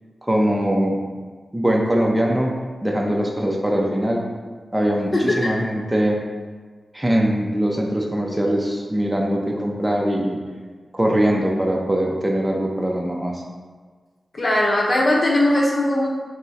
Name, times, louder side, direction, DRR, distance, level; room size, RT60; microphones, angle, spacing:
voice 1, 0.2-1.0 1.5-2.5 2.8-4.2 4.7-6.2 6.9-10.4 10.9-13.4, right 1 dB, 15° right, -1 dB, 0.6 m, -21 dB
voice 2, 5.1-5.5 14.3-16.1, left 1 dB, 50° left, -2 dB, 0.8 m, -19 dB
3.5 x 2.1 x 4.1 m, 1.5 s
cardioid pair, 45°, 0 cm